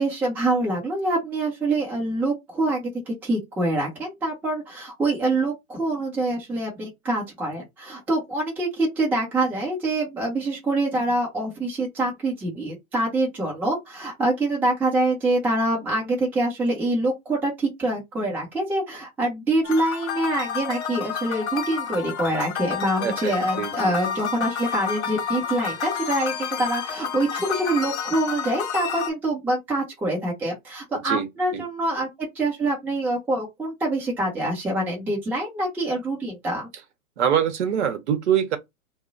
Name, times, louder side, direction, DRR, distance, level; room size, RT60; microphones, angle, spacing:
voice 1, 0.0-36.7, right 2 dB, 5° right, 0.5 m, -25 dB
sound 1, 19.6-29.1, left 8 dB, 50° left, 0.7 m, -30 dB
voice 2, 23.0-23.9 31.0-31.3 31.5-31.6 37.2-38.6, right 8 dB, 50° right, 0.7 m, -24 dB
2.1 x 2.0 x 3.8 m
hypercardioid pair, 120°, 43 cm